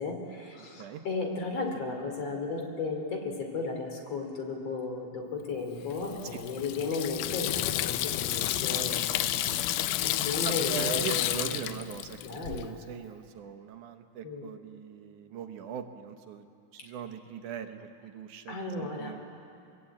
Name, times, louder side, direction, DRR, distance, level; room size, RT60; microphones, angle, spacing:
voice 1, 0.0-9.0 9.5-9.7 10.0-11.6 12.2-12.7 14.2-14.5 18.5-19.1, left 4 dB, 50° left, 3 dB, 3.8 m, -35 dB
Water tap faucet / Sink (filling or washing), 5.9-12.6, left 13 dB, 90° left, 2.3 m, -31 dB
voice 2, 9.1-9.6 10.1-12.2 12.5-16.5 16.7-19.2, right 8 dB, 75° right, 7 dB, 2.4 m, -40 dB
22.5 x 22.5 x 8.6 m, 2.5 s
omnidirectional pair, 3.6 m